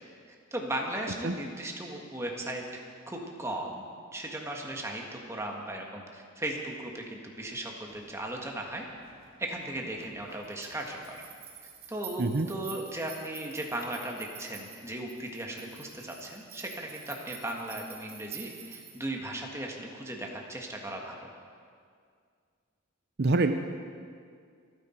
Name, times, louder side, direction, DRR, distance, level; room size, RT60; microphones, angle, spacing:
voice 1, 0.5-2.7 3.1-3.8 4.1-8.8 9.4-11.2 11.9-21.3, right 1 dB, 15° right, 0 dB, 1.7 m, -37 dB
sound 1, 7.9-19.0, right 8 dB, 75° right, 3.2 m, -49 dB
voice 2, 23.2-23.5, right 3 dB, 50° right, 8 dB, 0.6 m, -25 dB
27.0 x 9.7 x 4.5 m, 2.1 s
head